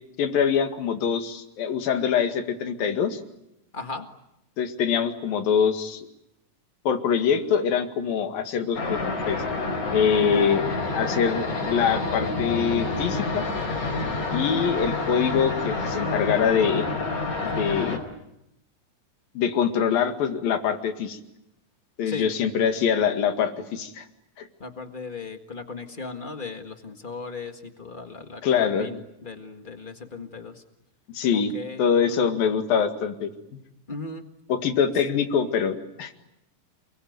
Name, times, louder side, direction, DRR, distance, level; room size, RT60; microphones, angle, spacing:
voice 1, 0.2-3.2 4.6-6.1 6.9-9.4 9.9-10.6 10.9-13.5 14.3-16.9 17.4-18.0 19.4-21.2 22.0-24.0 24.4-24.5 28.4-28.9 31.1-31.5 31.8-33.3 34.5-36.1, left 7 dB, 85° left, 7 dB, 3.8 m, -24 dB
voice 2, 3.7-4.1 10.2-10.5 22.1-22.3 24.6-30.6 31.3-32.3 33.9-34.2, left 4 dB, 30° left, 6 dB, 0.8 m, -37 dB
sound 1, 8.7-18.0, left 3 dB, 55° left, 5.6 m, -28 dB
29.0 x 21.5 x 9.4 m, 0.85 s
omnidirectional pair, 4.0 m